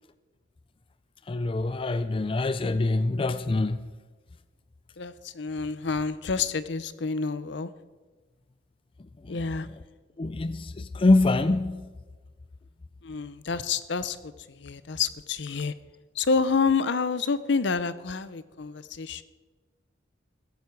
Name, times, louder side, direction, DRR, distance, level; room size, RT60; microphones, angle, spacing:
voice 1, 1.3-3.8 9.3-9.4 10.2-11.9, left 2 dB, 30° left, 0.4 m, -25 dB
voice 2, 5.0-7.7 9.3-9.7 13.0-15.7 16.2-19.2, left 5 dB, 65° left, 0.7 m, -28 dB
15.5 x 14.5 x 4.7 m
head